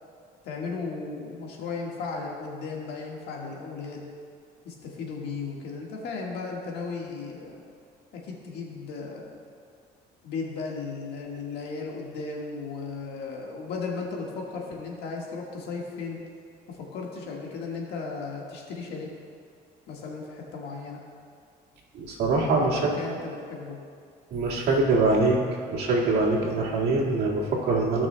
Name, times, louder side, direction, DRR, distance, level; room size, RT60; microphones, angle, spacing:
voice 1, 0.4-4.0 4.6-7.6 8.1-9.4 10.2-16.2 16.7-19.1 19.9-21.0 22.6-23.8, left 4 dB, 80° left, -1 dB, 1.6 m, -35 dB
voice 2, 21.9-22.8 24.3-25.4 25.7-28.1, right 3 dB, 70° right, -4 dB, 1.9 m, -23 dB
16.5 x 6.0 x 2.2 m, 2.3 s
cardioid pair, 110°, 17 cm